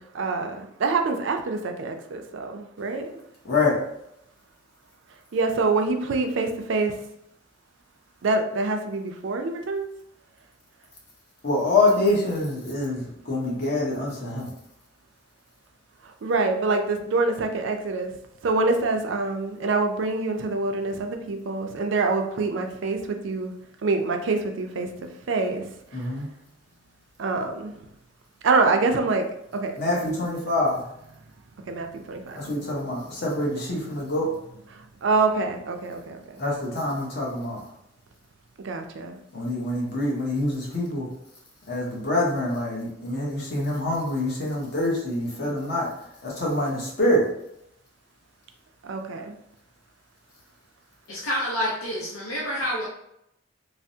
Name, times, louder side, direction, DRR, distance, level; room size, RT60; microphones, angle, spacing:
voice 1, 0.0-3.2 5.3-7.0 8.2-9.9 16.0-18.1 18.4-23.5 23.8-25.6 25.9-26.1 27.2-27.8 28.4-29.3 29.5-29.7 31.7-32.9 34.7-36.4 38.6-39.2 48.8-49.3, right 3 dB, 65° right, 5 dB, 0.4 m, -26 dB
voice 2, 3.4-3.8 11.4-14.5 25.9-26.3 29.8-30.8 32.4-34.3 36.4-37.6 39.3-41.1 41.7-45.9 46.2-47.2, left 2 dB, 50° left, -4 dB, 0.9 m, -25 dB
voice 3, 51.1-52.9, equal, 85° left, -5 dB, 0.7 m, -28 dB
3.3 x 2.0 x 2.6 m, 0.79 s
head